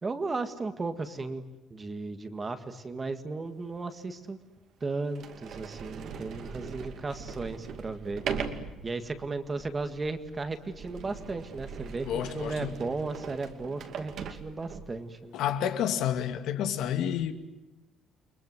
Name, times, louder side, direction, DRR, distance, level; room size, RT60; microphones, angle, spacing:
voice 1, 0.0-4.4 4.8-8.2 8.8-15.3, right 3 dB, 20° right, 1.8 m, -35 dB
Sliding door, 3.7-3.8 4.6-4.7 5.1-15.0, right 6 dB, 50° right, 2.5 m, -40 dB
voice 2, 12.0-12.7 15.3-17.3, left 10 dB, 65° left, 2.4 m, -29 dB
30.0 x 23.5 x 8.0 m
cardioid pair, 170°, 0 cm